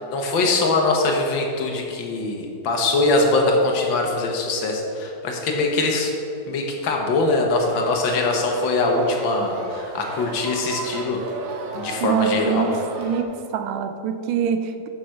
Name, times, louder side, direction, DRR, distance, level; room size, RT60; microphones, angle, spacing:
voice 1, 0.0-6.1 6.5-11.3 11.7-12.7, left 2 dB, 70° left, 1 dB, 1.7 m, -22 dB
sound 1, 7.6-13.2, right 3 dB, 60° right, 0.9 m, -35 dB
voice 2, 12.0-14.9, right 7 dB, 80° right, 9 dB, 1.4 m, -25 dB
6.9 x 5.8 x 6.3 m, 2.8 s
omnidirectional pair, 2.3 m